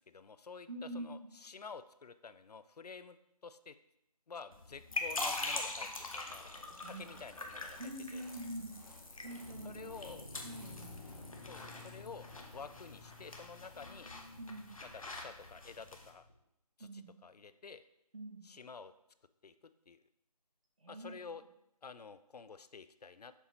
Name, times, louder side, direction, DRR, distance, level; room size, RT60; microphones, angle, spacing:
voice 1, 0.1-3.2 3.4-3.8 4.3-6.5 6.9-7.8 8.1-8.3 9.6-10.3 11.5-12.3 12.5-14.1 14.8-16.3 16.8-17.8 18.4-18.9 19.4-19.5 19.9-20.0 20.9-21.4 21.8-23.3, left 5 dB, 75° left, 13 dB, 0.5 m, -50 dB
voice 2, 0.7-1.3 6.8-7.1 7.8-8.7 9.2-10.0 10.4-11.7 14.4-14.8 16.8-17.1 18.1-18.4 20.8-21.2, right 1 dB, 55° right, 1 dB, 1.4 m, -45 dB
sound 1, 4.5-16.1, left 2 dB, 55° left, 1.0 m, -44 dB
Train, 5.9-14.0, right 1 dB, ahead, 2.4 m, -64 dB
sound 2, 9.1-16.3, left 3 dB, 35° left, 0.7 m, -55 dB
6.9 x 4.1 x 4.2 m, 0.83 s
figure-of-eight pair, 175°, 21 cm